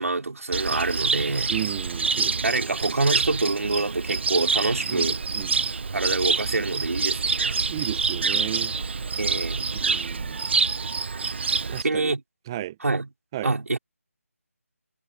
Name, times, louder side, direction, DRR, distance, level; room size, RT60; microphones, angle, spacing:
voice 1, 0.0-1.5 2.4-5.2 5.9-7.6 9.2-9.7 11.8-12.2 12.8-13.1 13.4-13.8, right 3 dB, 70° right, 5.3 m, -26 dB
Cricket, 0.5-11.8, right 4 dB, 45° right, 1.1 m, -26 dB
voice 2, 1.5-2.8 4.9-5.1 5.3-5.6 7.7-8.8 9.7-10.4 11.7-12.1 12.5-12.8 13.3-13.5, right 13 dB, 15° right, 1.1 m, -34 dB
figure-of-eight pair, 165°, 8 cm